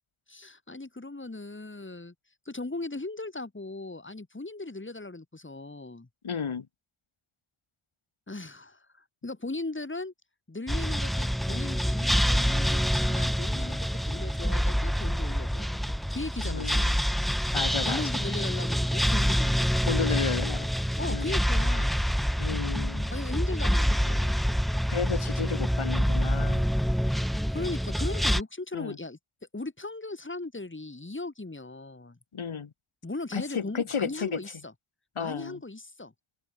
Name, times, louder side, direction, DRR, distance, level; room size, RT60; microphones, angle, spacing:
voice 1, 0.3-2.1 2.4-6.1 8.3-10.1 10.5-15.8 16.1-17.0 17.8-19.8 21.0-22.0 23.1-24.4 27.5-29.2 29.5-32.2 33.0-34.7 35.2-36.1, left 2 dB, 25° left, 4.5 m, -38 dB
voice 2, 6.2-6.7 16.4-16.9 17.5-18.0 19.9-20.7 21.1-21.3 22.4-23.1 24.9-26.7 28.7-29.0 32.3-32.7 33.3-34.4 35.2-35.6, left 6 dB, 80° left, 4.0 m, -32 dB
sound 1, 10.7-28.4, equal, ahead, 0.4 m, -26 dB
open air
wide cardioid pair, 85°, 49 cm